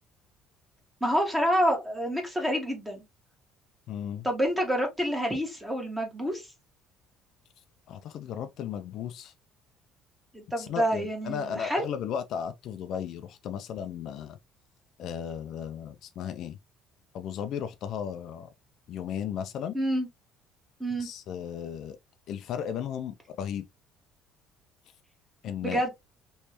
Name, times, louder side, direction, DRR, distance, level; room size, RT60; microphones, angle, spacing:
voice 1, 1.0-3.0 4.2-6.5 10.3-11.9 19.7-20.1 20.8-21.1 25.6-25.9, equal, 5° right, 1.4 m, -28 dB
voice 2, 3.9-4.3 7.9-9.3 10.6-14.4 15.0-16.6 17.1-18.5 18.9-19.8 21.0-22.0 22.3-23.7 25.4-25.8, left 8 dB, 60° left, 0.4 m, -35 dB
3.3 x 3.1 x 2.9 m
cardioid pair, 135°, 0 cm